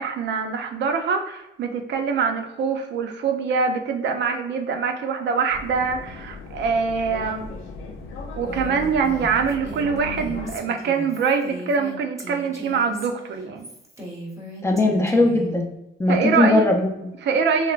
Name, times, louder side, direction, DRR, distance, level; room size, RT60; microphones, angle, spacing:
voice 1, 0.0-7.5 8.4-13.7 16.1-16.6 17.2-17.7, right 5 dB, 65° right, 5 dB, 0.5 m, -24 dB
sound 1, 5.5-10.6, left 3 dB, 80° left, 0.5 m, -37 dB
Female speech woman speaking, 8.4-15.5, equal, 15° right, 0.9 m, -38 dB
voice 2, 14.6-15.7 16.0-17.1, left 2 dB, 15° left, 1 dB, 0.5 m, -19 dB
3.1 x 2.0 x 2.4 m, 0.90 s
cardioid pair, 90°, 20 cm